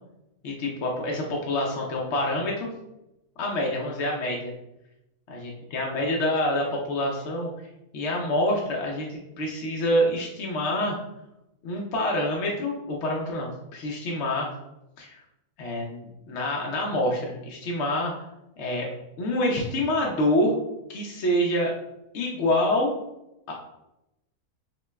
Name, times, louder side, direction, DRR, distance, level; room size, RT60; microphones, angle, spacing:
voice 1, 0.4-2.7 3.4-4.5 5.3-7.5 7.9-11.0 11.6-14.5 15.0-15.2 15.6-18.1 18.6-18.9 19.2-20.5 20.9-21.7 22.1-22.9 23.5-23.6, left 1 dB, 65° left, -1 dB, 0.7 m, -26 dB
5.0 x 2.2 x 2.2 m, 0.90 s
omnidirectional pair, 1.6 m